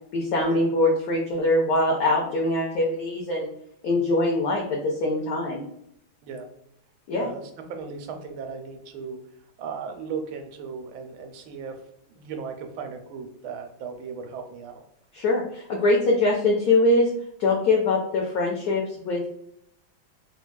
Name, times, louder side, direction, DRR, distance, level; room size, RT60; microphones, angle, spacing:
voice 1, 0.1-3.5 3.8-5.6 7.1-7.3 15.1-17.1 17.4-19.3, left 2 dB, 70° left, -1 dB, 0.9 m, -23 dB
voice 2, 7.1-7.4 7.7-9.2 9.6-11.7 12.1-14.8, right 5 dB, 85° right, 5 dB, 1.4 m, -36 dB
3.6 x 2.3 x 2.2 m, 0.73 s
omnidirectional pair, 2.1 m